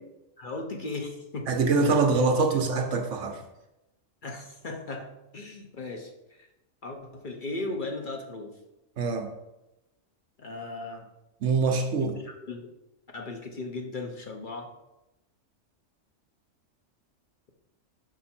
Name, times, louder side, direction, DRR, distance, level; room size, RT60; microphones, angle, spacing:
voice 1, 0.4-1.5 4.2-6.5 6.8-8.6 10.4-11.1 12.0-12.7 13.1-14.7, left 2 dB, 45° left, 2 dB, 0.8 m, -37 dB
voice 2, 1.5-3.4 9.0-9.3 11.4-12.1, right 4 dB, 70° right, 4 dB, 1.2 m, -24 dB
6.0 x 5.6 x 4.3 m, 0.93 s
omnidirectional pair, 1.3 m